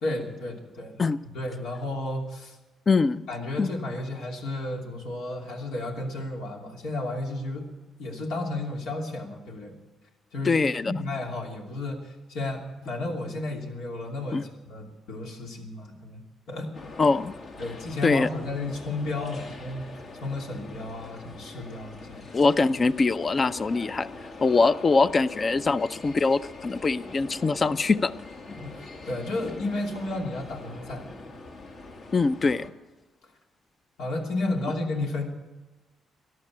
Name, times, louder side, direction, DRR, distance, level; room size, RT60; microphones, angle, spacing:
voice 1, 0.0-1.0 1.3-2.6 3.3-7.7 8.0-9.8 10.3-16.2 16.5-16.7 17.6-22.2 28.6-31.1 34.0-35.2, left 2 dB, 85° left, 1 dB, 2.9 m, -33 dB
voice 2, 2.9-3.2 3.6-3.7 10.4-10.9 14.3-14.4 17.0-17.3 18.0-18.3 22.3-24.1 24.4-28.1 32.1-32.7, left 4 dB, 35° left, 14 dB, 0.6 m, -23 dB
sound 1, 16.7-32.7, left 3 dB, 60° left, 2.1 m, -43 dB
14.5 x 11.0 x 8.6 m, 1.2 s
cardioid pair, 90°, 0 cm